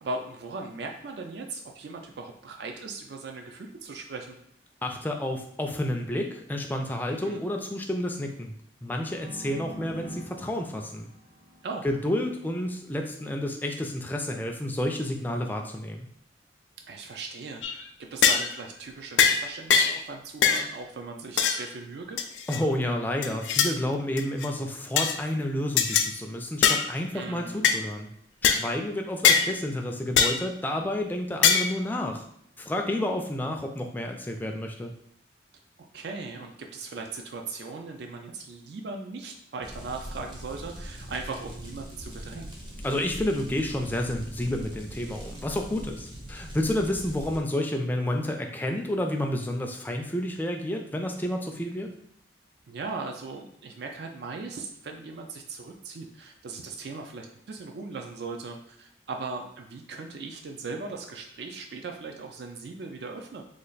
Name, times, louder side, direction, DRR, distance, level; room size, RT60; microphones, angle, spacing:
voice 1, 0.0-4.4 7.1-7.4 11.6-11.8 16.9-17.8 18.1-22.2 27.1-27.7 35.9-42.5 52.7-63.4, right 3 dB, 65° right, 3 dB, 0.4 m, -38 dB
voice 2, 4.8-8.5 8.8-11.1 11.8-16.1 22.5-28.1 28.4-32.3 32.6-34.9 42.8-51.9, left 1 dB, 10° left, 3 dB, 0.3 m, -30 dB
sound 1, 8.8-12.6, right 1 dB, 45° right, 1.1 m, -45 dB
sound 2, 17.6-17.8 18.2-18.5 19.2-19.4 19.7-20.0 20.4-20.7 21.4-21.6 22.2-22.6 23.2-23.7 24.2-24.5 25.0-25.2 25.8-26.1 26.6-26.9 27.6-27.8 28.4-28.6 29.2-29.5 30.2-30.4 31.4-31.7, left 7 dB, 85° left, 0.4 m, -21 dB
sound 3, 39.6-47.4, equal, 25° right, 0.7 m, -41 dB
3.2 x 2.4 x 3.9 m, 0.71 s
head